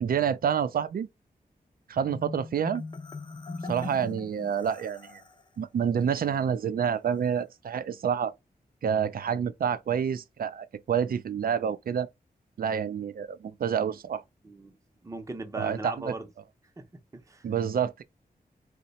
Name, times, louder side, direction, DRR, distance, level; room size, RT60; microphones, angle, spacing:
voice 1, 0.0-1.1 1.9-2.8 3.7-5.2 5.6-8.3 8.8-12.1 12.6-14.2 15.6-16.1 17.4-18.0, right 8 dB, 65° right, 0.4 m, -28 dB
Marimba xylophone, 2.1-5.4, left 3 dB, 30° left, 0.5 m, -40 dB
voice 2, 14.4-14.8 15.0-16.3 16.8-17.5, right 2 dB, 20° right, 0.6 m, -38 dB
2.8 x 2.1 x 4.0 m
wide cardioid pair, 85°, 16 cm